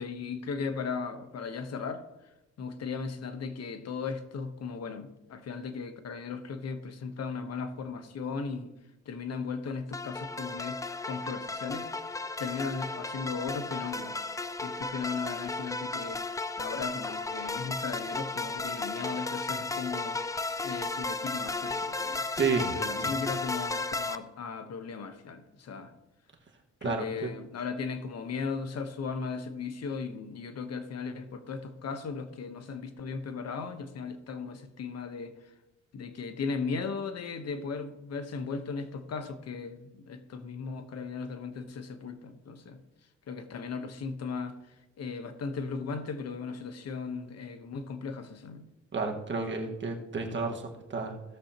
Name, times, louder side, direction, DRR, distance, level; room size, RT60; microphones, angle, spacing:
voice 1, 0.0-2.0 2.6-8.7 9.0-12.1 12.4-14.2 14.6-16.2 16.6-20.2 20.5-22.2 22.7-25.9 26.8-35.5 35.9-42.8 43.3-48.6, left 5 dB, 55° left, 1.1 m, -37 dB
sound 1, 9.9-24.2, left 3 dB, 10° left, 0.5 m, -34 dB
voice 2, 22.4-22.7 23.0-23.1 26.8-27.3 48.9-51.2, right 4 dB, 40° right, 1.6 m, -31 dB
16.5 x 7.0 x 2.9 m
cardioid pair, 90°, 30 cm